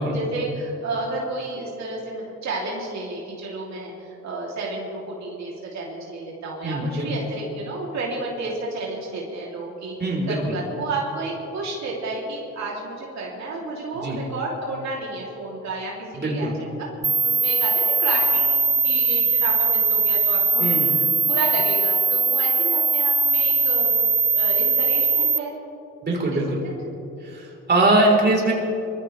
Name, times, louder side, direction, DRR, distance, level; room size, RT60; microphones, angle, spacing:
voice 1, 0.1-9.9 10.3-16.5 16.8-16.9 17.2-23.9 24.3-25.5 26.3-26.7, right 2 dB, 65° right, -4 dB, 3.2 m, -31 dB
voice 2, 6.6-7.1 10.0-10.5 13.9-14.2 16.1-16.5 20.6-20.9 26.0-26.5 27.2-28.5, right 2 dB, 35° right, -1 dB, 4.0 m, -22 dB
sound 1, 17.0-25.4, right 3 dB, 15° right, 0.6 m, -20 dB
23.5 x 15.0 x 3.4 m, 2.9 s
cardioid pair, 90°, 30 cm